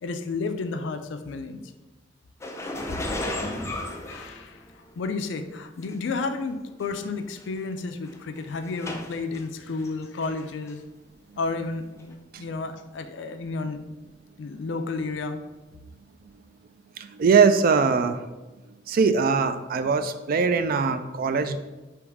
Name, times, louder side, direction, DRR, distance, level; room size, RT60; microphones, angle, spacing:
voice 1, 0.0-1.6 3.5-3.7 4.0-4.6 5.0-10.8 11.4-13.8 14.4-15.4, left 3 dB, 80° left, 8 dB, 0.4 m, -32 dB
sound 1, 2.4-5.0 5.8-5.9 6.8-6.9 7.2-7.5 8.1-9.4 9.8-10.4 10.7-10.8 12.0-12.1, left 1 dB, 15° left, 0.4 m, -34 dB
voice 2, 17.0-18.3 18.9-21.6, right 5 dB, 50° right, 10 dB, 0.3 m, -21 dB
3.5 x 3.0 x 4.8 m, 1.1 s
head